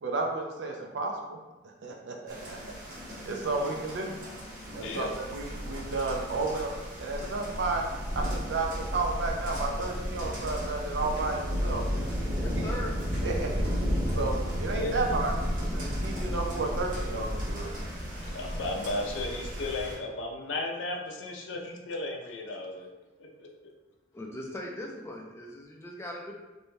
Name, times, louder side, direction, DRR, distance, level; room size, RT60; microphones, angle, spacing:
voice 1, 0.0-2.6 3.2-4.2 4.7-6.7 7.0-7.9 8.1-12.3 12.6-12.8 13.2-13.7 14.1-17.7, right 3 dB, 70° right, 1 dB, 0.5 m, -32 dB
sound 1, 2.3-20.0, equal, 45° right, 0.7 m, -33 dB
voice 2, 4.7-5.1 10.8-10.9 14.8-14.9 18.3-22.9 23.2-23.5, left 2 dB, 75° left, 0 dB, 0.5 m, -35 dB
voice 3, 12.3-13.0 24.1-26.3, left 1 dB, 15° left, -1 dB, 0.3 m, -39 dB
2.6 x 2.2 x 3.2 m, 1.1 s
head